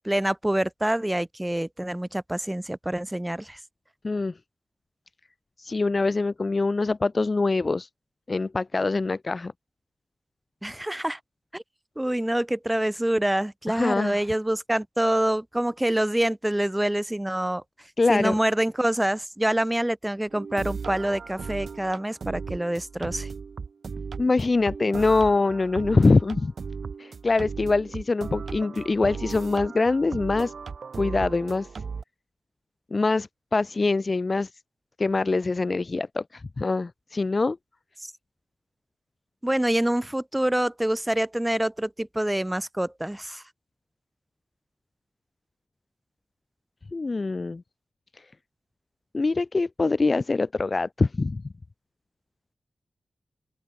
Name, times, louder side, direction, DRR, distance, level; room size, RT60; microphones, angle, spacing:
voice 1, 0.0-3.6 10.6-11.2 11.5-11.6 12.0-17.6 18.1-23.3 38.0-38.1 39.4-43.4, right 1 dB, 10° right, 1.4 m, -26 dB
voice 2, 4.0-4.3 5.6-7.9 8.3-9.5 13.7-14.2 18.0-18.4 24.2-26.5 27.0-30.5 31.0-31.7 32.9-34.5 35.0-37.6 46.9-47.6 48.1-48.3 49.1-51.4, left 3 dB, 30° left, 0.5 m, -24 dB
sound 1, 20.3-32.0, right 5 dB, 55° right, 1.4 m, -36 dB
open air
wide cardioid pair, 170°, 0 cm